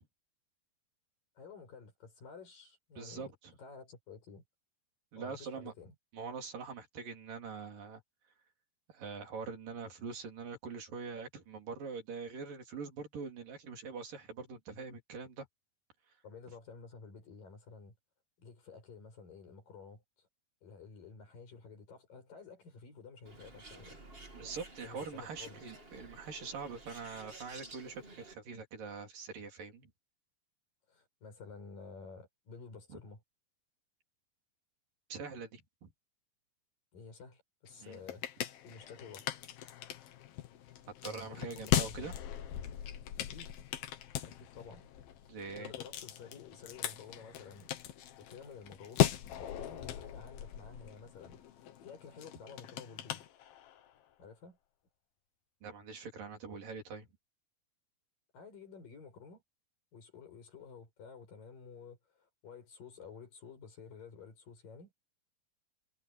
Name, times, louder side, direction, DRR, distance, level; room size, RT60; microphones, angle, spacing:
voice 1, 1.4-3.3 3.6-4.4 5.2-5.9 16.2-17.9 18.4-20.3 20.6-24.0 24.8-25.7 30.9-33.2 36.9-38.2 38.6-39.3 41.1-42.2 43.2-43.5 44.3-44.9 45.6-47.9 48.2-53.2 54.2-54.6 58.3-59.4 59.9-64.9, left 5 dB, 70° left, 8.4 m, -52 dB
voice 2, 3.0-3.5 5.1-5.7 6.1-8.0 8.9-15.5 24.3-29.9 32.9-33.0 35.1-35.9 37.8-38.0 41.0-42.1 45.3-45.7 55.6-57.1, right 5 dB, 70° right, 5.4 m, -44 dB
Bird, 23.2-28.3, right 2 dB, 20° right, 2.6 m, -52 dB
sound 1, 37.7-53.9, left 12 dB, 85° left, 3.3 m, -38 dB
omnidirectional pair, 4.1 m